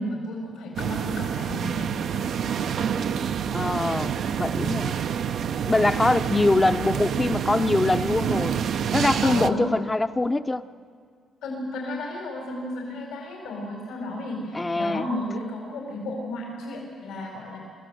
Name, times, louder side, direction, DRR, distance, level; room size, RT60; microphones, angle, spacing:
voice 1, 0.0-2.2 9.2-9.6 11.4-17.6, left 1 dB, 85° left, -1 dB, 4.7 m, -33 dB
sound 1, 0.8-9.5, right 8 dB, 65° right, 0.7 m, -27 dB
voice 2, 3.5-4.9 5.7-8.6 8.9-10.6 14.5-15.1, left 2 dB, 20° left, 12 dB, 0.7 m, -23 dB
25.5 x 14.5 x 7.8 m, 2.1 s
cardioid pair, 90°, 0 cm